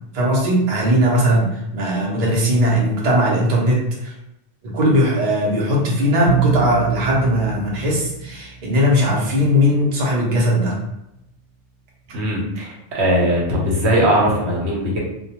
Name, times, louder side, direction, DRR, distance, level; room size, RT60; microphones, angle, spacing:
voice 1, 0.1-4.1 4.6-10.8, equal, 45° right, -3 dB, 0.6 m, -18 dB
Bowed string instrument, 6.3-9.1, right 7 dB, 50° left, 0.6 m, -25 dB
voice 2, 12.1-15.0, equal, 70° right, -3 dB, 0.9 m, -19 dB
2.2 x 2.2 x 2.8 m, 0.85 s
omnidirectional pair, 1.2 m